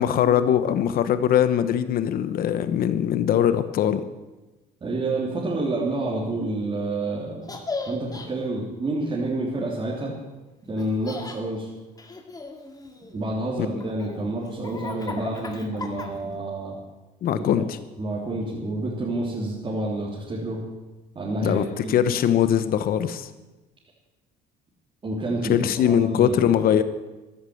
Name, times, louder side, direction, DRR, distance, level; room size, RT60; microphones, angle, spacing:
voice 1, 0.0-4.0 17.2-17.8 21.4-23.3 25.5-26.8, left 9 dB, 60° left, 12 dB, 1.0 m, -21 dB
voice 2, 4.8-7.5 7.9-10.1 10.7-11.7 13.1-16.8 17.3-17.4 18.0-20.6 21.1-22.0 25.0-26.4, right 2 dB, 30° right, -5 dB, 3.3 m, -28 dB
Laughter, 7.4-8.3 10.8-11.4 12.0-13.2 13.8-16.4, left 3 dB, 20° left, 2.0 m, -36 dB
14.5 x 11.5 x 7.9 m, 1.1 s
cardioid pair, 110°, 17 cm